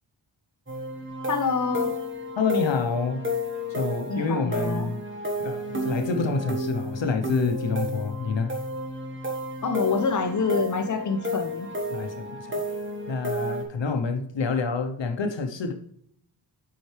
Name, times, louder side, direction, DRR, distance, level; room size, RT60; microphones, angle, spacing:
sound 1, 0.7-13.6, left 1 dB, 25° right, 1.5 m, -31 dB
voice 1, 1.3-2.0 4.1-4.9 9.6-11.7, left 4 dB, 40° left, 5 dB, 0.9 m, -26 dB
voice 2, 2.4-3.2 3.7-5.0 5.4-8.5 11.9-12.6 13.1-15.7, left 4 dB, 75° left, 6 dB, 0.9 m, -27 dB
7.6 x 5.7 x 3.3 m, 0.67 s
wide cardioid pair, 100°, 45 cm